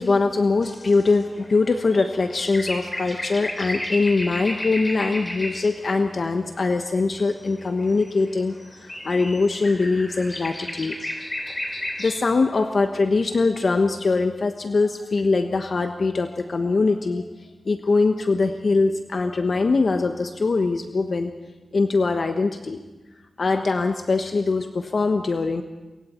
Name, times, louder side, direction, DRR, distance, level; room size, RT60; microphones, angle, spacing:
voice 1, 0.0-11.0 11.7-17.3 17.6-21.3 21.7-22.8 23.4-25.6, left 3 dB, 60° left, 5 dB, 1.2 m, -22 dB
sound 1, 0.6-5.9 6.2-12.6, left 1 dB, 25° left, 3.7 m, -34 dB
26.0 x 23.0 x 4.5 m, 1.1 s
wide cardioid pair, 75°, 0 cm